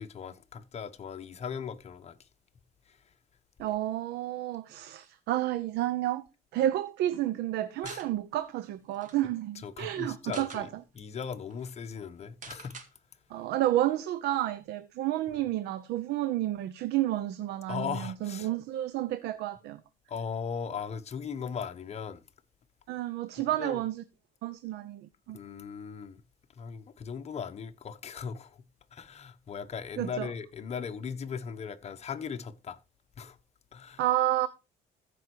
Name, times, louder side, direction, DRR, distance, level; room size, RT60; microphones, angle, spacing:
voice 1, 0.0-2.2 2.9-3.0 7.8-8.0 9.6-10.7 10.9-12.8 15.3-15.4 17.7-18.5 20.1-22.2 23.6-23.8 25.3-26.2 26.6-28.6 28.9-32.8 33.2-33.4 33.7-34.0, left 6 dB, 40° left, 1.2 m, -38 dB
voice 2, 3.6-6.2 6.5-10.7 13.3-19.8 22.9-24.0 24.4-25.4 30.0-30.3 34.0-34.5, right 13 dB, 80° right, 0.9 m, -30 dB
sound 1, 7.8-8.1 8.6-8.7 8.9-9.2 10.1-10.6 11.2-11.3 11.5-11.7 12.4-12.9, right 5 dB, 50° right, 2.1 m, -45 dB
14.5 x 5.5 x 4.7 m
cardioid pair, 110°, 17 cm